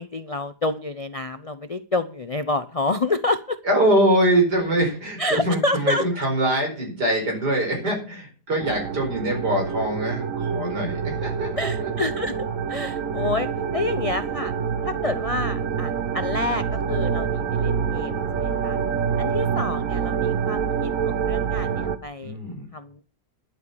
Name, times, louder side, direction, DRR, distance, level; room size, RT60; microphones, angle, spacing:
voice 1, 0.0-3.6 5.2-6.1 11.6-12.4 12.7-14.5 14.8-18.8 19.2-22.4 22.7-23.0, left 2 dB, 65° left, 11 dB, 0.3 m, -28 dB
voice 2, 3.7-11.5 11.8-11.9 22.2-22.7, right 1 dB, 75° right, 1 dB, 5.5 m, -23 dB
sound 1, 8.6-22.0, right 7 dB, 55° right, 1.4 m, -26 dB
11.5 x 8.3 x 6.9 m, 0.40 s
omnidirectional pair, 1.8 m